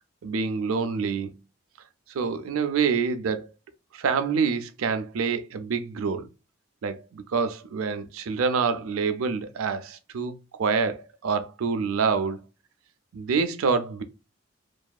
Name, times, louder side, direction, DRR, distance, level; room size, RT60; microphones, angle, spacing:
voice 1, 0.2-1.3 2.1-3.5 3.9-6.3 6.8-12.4 13.1-14.0, right 5 dB, 90° right, 0.4 m, -26 dB
2.7 x 2.3 x 2.2 m
head